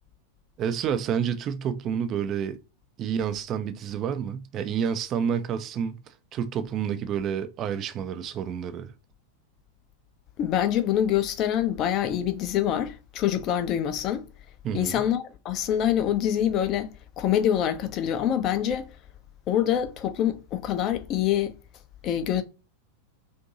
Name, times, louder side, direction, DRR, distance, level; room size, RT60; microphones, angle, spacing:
voice 1, 0.6-2.6 3.0-8.9 14.6-15.0, right 8 dB, 30° right, 0.4 m, -29 dB
voice 2, 10.4-14.2 14.7-16.9 17.2-18.9 19.5-21.6 22.0-22.4, left 10 dB, 35° left, 0.5 m, -25 dB
2.6 x 2.6 x 2.5 m
figure-of-eight pair, 90°, 0 cm